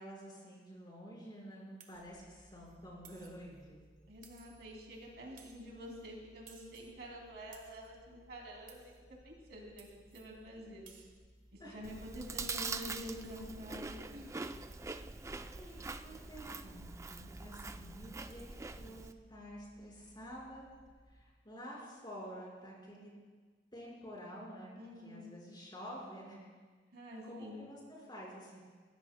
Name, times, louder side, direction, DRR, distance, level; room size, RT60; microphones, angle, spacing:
voice 1, 0.0-3.8 11.6-11.8 15.6-18.4 18.8-20.7 21.1-23.1 23.7-24.7 25.0-26.5 27.3-28.6, equal, 25° left, -4 dB, 4.8 m, -49 dB
sound 1, 1.8-2.1 3.0-3.5 4.2-4.7 5.4-5.7 6.5-7.0 7.5-7.9 8.7-9.0 9.8-10.3 10.8-11.2 12.4-12.7 13.1-13.4 14.4-14.6, right 7 dB, 50° right, 1.5 m, -60 dB
sound 2, 1.9-21.2, equal, 65° left, 4.1 m, -64 dB
voice 2, 4.1-8.9 9.2-9.9 10.1-10.9 11.5-14.4 24.8-25.4 26.9-27.6, equal, 65° right, -1 dB, 2.8 m, -48 dB
Chewing mastication, 11.8-19.1, right 3 dB, 15° right, 0.4 m, -44 dB
20.5 x 16.5 x 2.2 m, 1.4 s
head